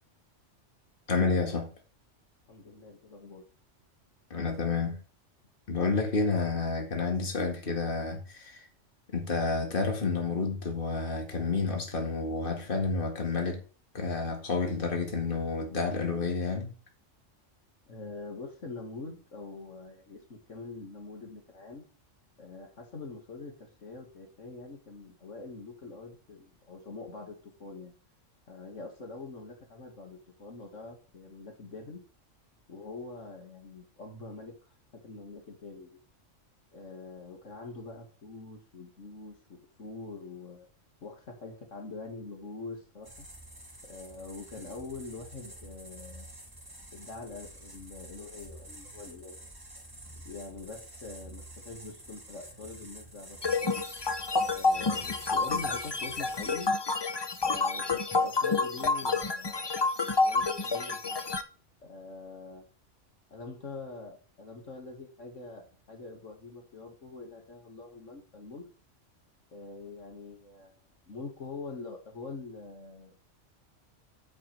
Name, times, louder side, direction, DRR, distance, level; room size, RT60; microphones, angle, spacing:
voice 1, 1.1-1.7 4.3-5.0 5.7-8.7 9.1-13.6 13.9-16.7, left 4 dB, 45° left, 2.1 m, -30 dB
voice 2, 2.5-3.4 17.9-21.8 22.4-27.9 28.5-32.0 32.7-34.5 34.9-36.0 36.7-40.7 41.0-43.3 43.8-46.3 46.9-49.5 50.2-53.8 54.4-56.7 57.4-59.7 60.2-61.2 61.8-62.6 63.3-68.6 69.5-70.8 71.1-73.3, left 3 dB, 75° left, 2.3 m, -44 dB
sound 1, 43.0-56.7, right 1 dB, 15° right, 2.2 m, -49 dB
sound 2, 53.4-61.4, left 3 dB, 30° left, 0.5 m, -29 dB
8.7 x 8.3 x 3.4 m
omnidirectional pair, 1.3 m